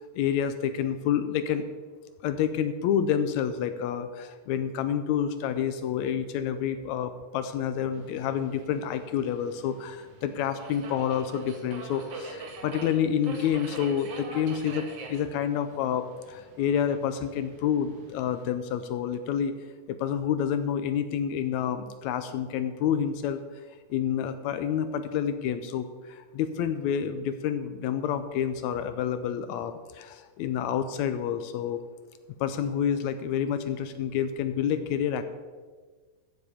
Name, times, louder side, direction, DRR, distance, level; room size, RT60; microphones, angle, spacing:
voice 1, 0.2-1.7 2.2-19.6 19.9-23.4 23.9-31.8 32.4-35.2, left 8 dB, 80° left, 10 dB, 1.7 m, -28 dB
Subway metro underground, 7.9-18.5, right 3 dB, 60° right, 2.1 m, -44 dB
13.5 x 7.4 x 5.0 m, 1.4 s
omnidirectional pair, 3.6 m